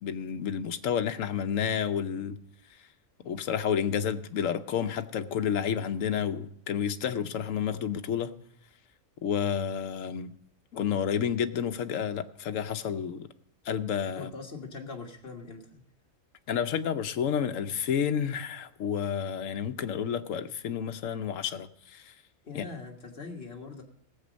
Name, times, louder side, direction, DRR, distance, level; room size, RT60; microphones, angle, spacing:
voice 1, 0.0-2.4 3.2-8.3 9.2-10.3 10.7-13.3 13.7-14.3 16.5-22.1 22.5-22.6, left 8 dB, 75° left, 9 dB, 1.1 m, -30 dB
voice 2, 14.1-15.8 22.4-23.8, left 4 dB, 45° left, 1 dB, 1.8 m, -42 dB
17.5 x 7.5 x 5.2 m, 0.69 s
omnidirectional pair, 1.4 m